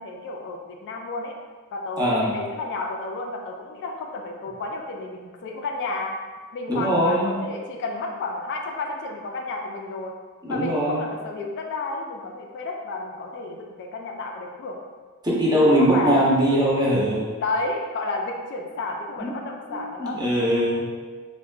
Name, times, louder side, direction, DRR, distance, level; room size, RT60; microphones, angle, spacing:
voice 1, 0.0-1.3 1.7-6.2 6.5-10.1 10.5-14.8 15.8-16.2 17.4-20.2, left 3 dB, 55° left, 2 dB, 0.3 m, -31 dB
voice 2, 2.0-2.3 6.7-7.3 10.4-11.0 15.2-17.3 19.2-19.3 19.7-20.8, equal, 20° right, -6 dB, 0.6 m, -21 dB
3.6 x 2.2 x 2.3 m, 1.5 s
head